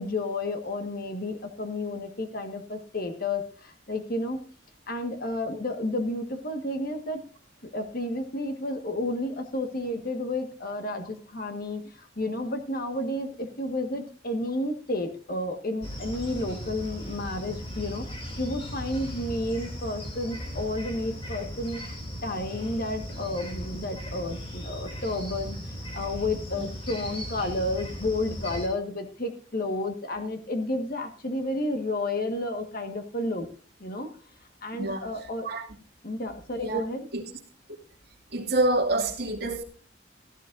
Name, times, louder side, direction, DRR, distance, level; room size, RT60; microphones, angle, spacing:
voice 1, 0.0-4.4 4.9-7.2 7.6-33.5 33.8-34.1 34.6-35.5 36.0-37.1, left 1 dB, 50° left, 1.6 m, -31 dB
sound 1, 15.8-28.7, equal, 30° left, 2.9 m, -37 dB
voice 2, 38.3-39.6, right 2 dB, 55° right, 2.3 m, -26 dB
16.5 x 12.5 x 2.6 m
head